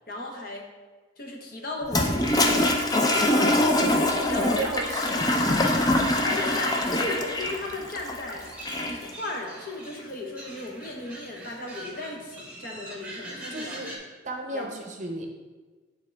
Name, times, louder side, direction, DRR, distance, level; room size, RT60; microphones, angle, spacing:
voice 1, 0.1-0.7 1.2-2.7 4.3-4.8 6.2-8.5 8.9-13.8 14.5-14.7, left 2 dB, 50° left, 0 dB, 1.0 m, -36 dB
Toilet flush, 1.8-9.1, left 1 dB, 20° left, 0.4 m, -24 dB
voice 2, 3.2-3.7 4.2-5.8 13.5-13.9 14.2-15.3, right 2 dB, 40° right, 2 dB, 0.7 m, -35 dB
sound 1, 8.4-14.0, right 1 dB, 5° right, 1.2 m, -43 dB
8.7 x 3.7 x 3.4 m, 1.3 s
head